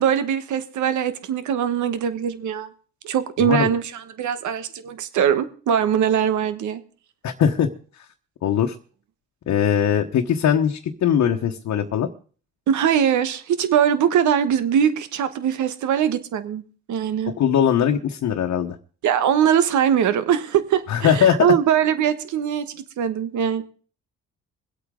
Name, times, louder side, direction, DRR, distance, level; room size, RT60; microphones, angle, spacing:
voice 1, 0.0-2.7 3.0-6.8 12.7-17.3 19.0-23.6, right 9 dB, 75° right, 1.3 m, -21 dB
voice 2, 7.2-7.7 8.4-8.7 9.5-12.1 17.4-18.8 20.9-21.5, left 8 dB, 65° left, 1.2 m, -20 dB
23.0 x 8.4 x 3.8 m
cardioid pair, 90°, 30 cm